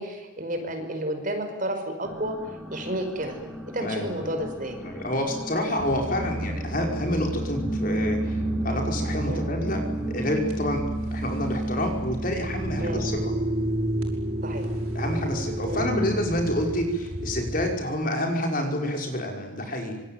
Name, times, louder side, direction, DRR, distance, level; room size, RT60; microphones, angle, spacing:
voice 1, 0.0-2.4 2.7-3.4 3.7-4.8 9.3-9.4 12.8-13.0 14.4-14.7 15.7-15.8, right 1 dB, 40° right, 6 dB, 5.3 m, -31 dB
sound 1, 2.0-10.4, equal, ahead, 2.6 m, -37 dB
voice 2, 3.8-4.3 4.8-9.8 10.1-10.8 11.1-13.3 14.9-20.0, left 1 dB, 40° left, 2 dB, 5.6 m, -28 dB
sound 2, 5.8-17.7, right 1 dB, 85° right, 7.2 m, -30 dB
26.5 x 23.5 x 9.4 m, 1.1 s
head